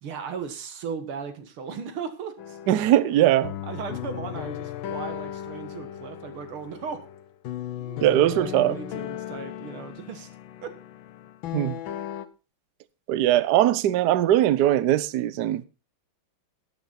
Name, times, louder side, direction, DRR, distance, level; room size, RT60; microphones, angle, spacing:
voice 1, 0.0-2.6 3.6-7.0 7.8-10.3 10.6-10.7, right 6 dB, 90° right, 2.4 m, -37 dB
sound 1, 2.4-12.3, left 11 dB, 70° left, 1.5 m, -36 dB
voice 2, 2.7-3.5 8.0-8.8 11.5-11.8 13.1-15.7, right 13 dB, 70° right, 1.1 m, -20 dB
12.0 x 9.3 x 4.1 m
omnidirectional pair, 2.3 m